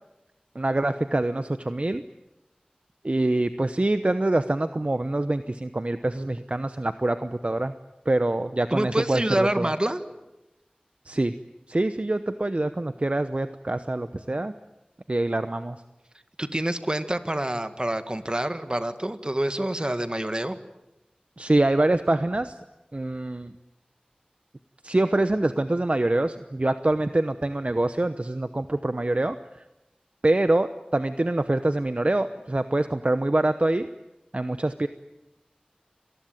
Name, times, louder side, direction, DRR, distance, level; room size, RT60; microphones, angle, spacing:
voice 1, 0.5-2.0 3.0-7.7 8.0-9.7 11.0-11.3 11.7-14.5 15.1-15.8 21.4-22.6 22.9-23.5 24.8-29.4 30.2-33.9 34.3-34.9, right 2 dB, 50° right, 11 dB, 0.9 m, -25 dB
voice 2, 8.7-10.0 16.4-20.6, right 1 dB, 35° right, 10 dB, 1.8 m, -27 dB
26.0 x 19.5 x 9.2 m, 0.96 s
wide cardioid pair, 45°, 3 cm